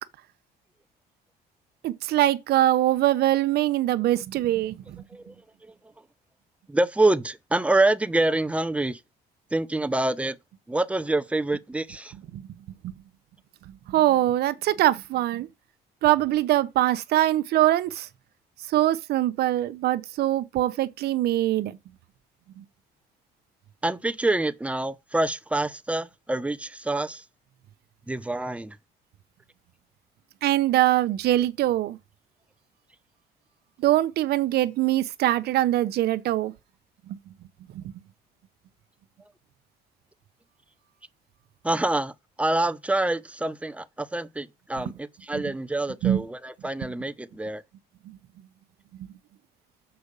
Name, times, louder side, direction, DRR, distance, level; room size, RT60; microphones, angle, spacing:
voice 1, 1.8-5.0 12.3-12.4 12.8-12.9 13.9-15.5 16.0-18.1 18.7-21.8 22.6-22.7 30.4-32.0 33.8-36.5 37.7-37.8 45.3-45.4 46.0-46.2 48.1-48.2, right 14 dB, 70° right, 0.8 m, -23 dB
voice 2, 6.7-9.0 9.5-10.4 10.7-12.1 23.8-27.2 28.1-28.8 41.6-42.1 42.4-47.6, right 2 dB, 5° right, 0.7 m, -26 dB
6.9 x 4.7 x 6.7 m
cardioid pair, 110°, 17 cm